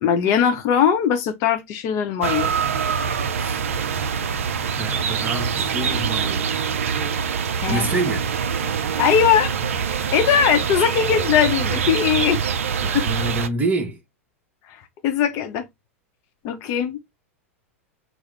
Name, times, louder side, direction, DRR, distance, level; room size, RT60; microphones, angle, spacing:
voice 1, 0.0-2.5 7.6-7.9 9.0-9.5 10.1-12.4 14.7-14.8 15.0-15.7 16.4-17.0, left 8 dB, 40° left, 0.6 m, -20 dB
sound 1, 2.2-13.5, right 6 dB, 65° right, 0.4 m, -24 dB
voice 2, 4.8-6.5 7.7-8.3 12.8-14.0, right 2 dB, 20° right, 0.9 m, -27 dB
3.4 x 2.0 x 3.1 m
figure-of-eight pair, 90°, 8 cm